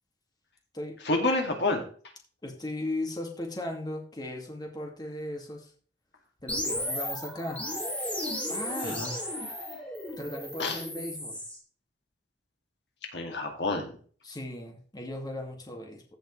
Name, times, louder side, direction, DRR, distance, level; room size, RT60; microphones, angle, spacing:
voice 1, 1.0-1.8 8.8-9.1 9.4-9.6 10.6-10.8 13.1-13.9, left 2 dB, 70° left, 3 dB, 2.4 m, -29 dB
voice 2, 2.4-5.7 6.4-7.6 8.5-9.3 10.2-11.4 14.2-16.0, left 1 dB, 25° left, 2 dB, 2.2 m, -37 dB
sound 1, 6.5-11.6, left 1 dB, 10° left, 3.2 m, -34 dB
15.0 x 6.4 x 3.3 m, 0.43 s
head